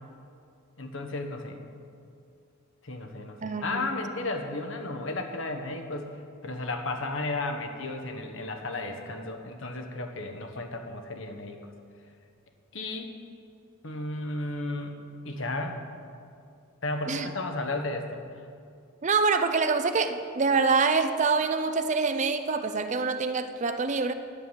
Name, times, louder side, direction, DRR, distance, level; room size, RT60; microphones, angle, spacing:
voice 1, 0.8-1.6 2.8-11.6 12.7-13.1 13.8-15.0 15.2-15.8 16.8-18.2, left 2 dB, 60° left, 5 dB, 1.1 m, -34 dB
voice 2, 3.4-3.9 17.1-17.3 19.0-24.1, right 4 dB, 35° right, 9 dB, 0.5 m, -25 dB
10.0 x 7.0 x 9.3 m, 2.5 s
head